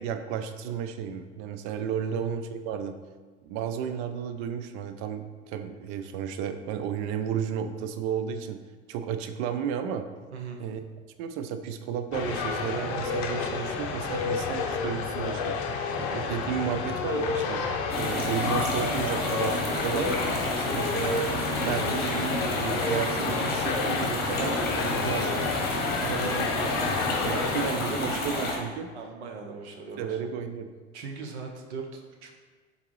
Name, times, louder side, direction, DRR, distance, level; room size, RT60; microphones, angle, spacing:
voice 1, 0.0-2.9 3.4-8.6 8.9-10.1 10.6-10.8 11.2-15.8 16.1-17.6 17.9-20.1 20.5-21.2 21.6-25.3 26.0-28.9 30.0-30.7, right 8 dB, 50° right, 8 dB, 0.5 m, -33 dB
voice 2, 10.3-10.6 28.9-30.2 30.9-32.4, right 5 dB, 80° right, 2 dB, 0.8 m, -40 dB
sound 1, 12.1-27.7, left 4 dB, 45° left, 0.6 m, -30 dB
sound 2, 17.9-28.6, left 1 dB, 30° left, 1.0 m, -30 dB
3.9 x 3.5 x 3.1 m, 1.4 s
hypercardioid pair, 90°, 34 cm